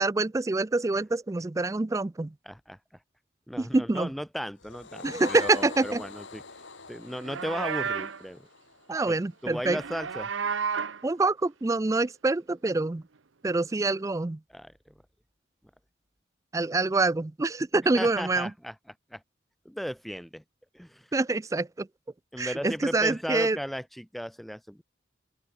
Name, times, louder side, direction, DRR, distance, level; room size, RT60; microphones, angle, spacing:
voice 1, 0.0-2.3 3.6-4.1 5.0-6.0 8.9-9.8 11.0-13.0 13.4-14.4 16.5-18.5 21.1-21.9 22.4-23.6, right 3 dB, 15° right, 0.3 m, -26 dB
voice 2, 2.4-2.8 3.5-6.4 6.9-8.5 9.0-9.2 9.4-10.3 14.5-14.9 17.9-18.8 19.1-19.2 19.6-20.4 20.7-21.1 22.3-24.8, equal, ahead, 4.3 m, -36 dB
sound 1, 4.6-9.2, left 4 dB, 75° left, 3.7 m, -43 dB
Livestock farm animals working animals, 7.1-8.2 9.5-11.0, right 6 dB, 80° right, 0.9 m, -32 dB
open air
head